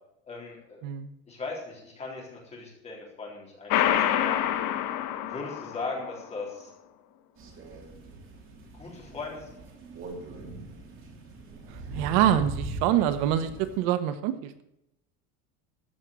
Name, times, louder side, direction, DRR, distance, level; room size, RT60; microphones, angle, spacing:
voice 1, 0.2-0.8 1.3-4.4 5.1-6.7 8.8-9.6, left 3 dB, 20° left, -2 dB, 3.9 m, -38 dB
sound 1, 3.7-6.1, left 11 dB, 55° left, 1.4 m, -26 dB
Crow, 7.4-13.8, right 2 dB, 35° right, 3.0 m, -41 dB
voice 2, 11.7-14.6, right 11 dB, 65° right, 11 dB, 1.1 m, -26 dB
14.0 x 6.1 x 8.2 m, 0.83 s
cardioid pair, 165°, 36 cm